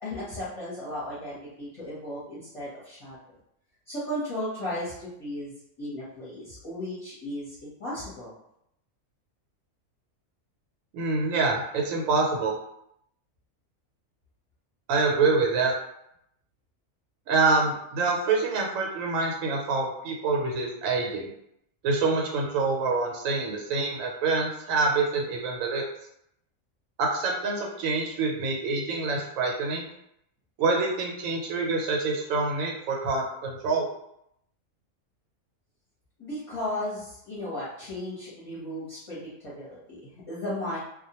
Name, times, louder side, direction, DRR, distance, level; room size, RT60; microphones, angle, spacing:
voice 1, 0.0-3.2 3.9-5.5 5.8-8.3 36.2-40.8, left 1 dB, 30° left, -10 dB, 0.7 m, -35 dB
voice 2, 10.9-12.5 14.9-15.7 17.3-21.3 21.8-25.8 27.0-29.9 30.6-33.9, right 3 dB, 80° right, 0 dB, 1.0 m, -26 dB
2.2 x 2.1 x 2.9 m, 0.76 s
omnidirectional pair, 1.4 m